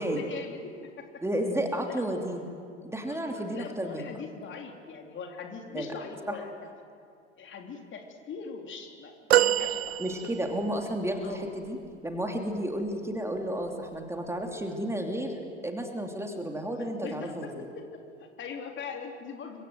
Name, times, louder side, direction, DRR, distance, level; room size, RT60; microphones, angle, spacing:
voice 1, 0.0-1.2 1.8-2.3 3.1-6.7 7.4-10.4 11.2-11.5 16.7-19.6, left 5 dB, 35° left, 3 dB, 3.7 m, -42 dB
voice 2, 1.2-2.5 2.8-4.1 5.7-5.9 6.3-6.4 10.0-11.8 12.0-17.5, right 1 dB, 5° right, 3 dB, 3.0 m, -32 dB
sound 1, 9.3-10.7 11.4-11.5, right 14 dB, 60° right, 1.0 m, -25 dB
30.0 x 25.0 x 8.0 m, 2.5 s
figure-of-eight pair, 75°, 35 cm